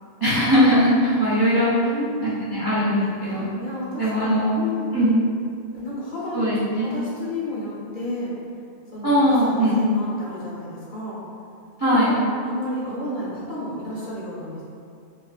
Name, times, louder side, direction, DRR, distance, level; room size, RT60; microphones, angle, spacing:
voice 1, 0.2-1.7 2.2-3.5 4.0-4.5 4.9-5.2 6.3-6.9 9.0-9.9 11.8-12.2, equal, 35° right, -11 dB, 0.3 m, -20 dB
voice 2, 1.7-2.7 3.6-5.1 5.7-6.5 6.8-8.3 8.9-11.2 11.9-14.6, left 1 dB, 50° left, -8 dB, 0.8 m, -31 dB
3.3 x 2.4 x 2.3 m, 2.4 s
omnidirectional pair, 1.2 m